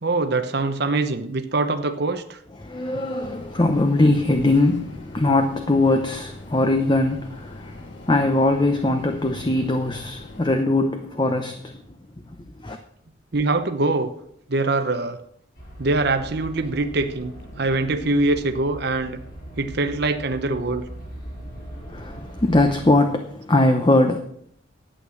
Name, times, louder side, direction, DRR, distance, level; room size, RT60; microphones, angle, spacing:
voice 1, 0.0-2.4 13.3-14.1 14.5-15.2 15.8-19.2 19.6-20.8, right 2 dB, 55° right, 0.9 m, -23 dB
voice 2, 2.6-11.8 12.6-12.8 21.9-24.2, left 2 dB, 25° left, 0.7 m, -21 dB
sound 1, 3.2-10.6, left 2 dB, 65° left, 1.2 m, -43 dB
sound 2, 15.5-22.9, equal, 50° left, 6.0 m, -39 dB
11.5 x 8.8 x 6.4 m
head